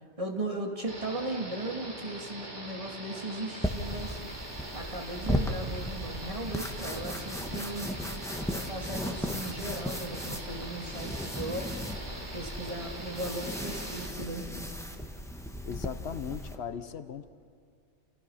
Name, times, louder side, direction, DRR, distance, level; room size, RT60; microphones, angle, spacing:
voice 1, 0.2-4.2 4.7-8.0 8.5-11.7 12.3-14.5, right 1 dB, 30° right, 1 dB, 2.5 m, -37 dB
sound 1, 0.9-14.1, right 1 dB, 85° right, 4.1 m, -42 dB
sound 2, 3.6-16.6, equal, 5° left, 1.3 m, -36 dB
voice 2, 15.7-17.3, left 7 dB, 70° left, 11 dB, 1.1 m, -38 dB
29.5 x 28.5 x 5.7 m, 2.3 s
omnidirectional pair, 1.2 m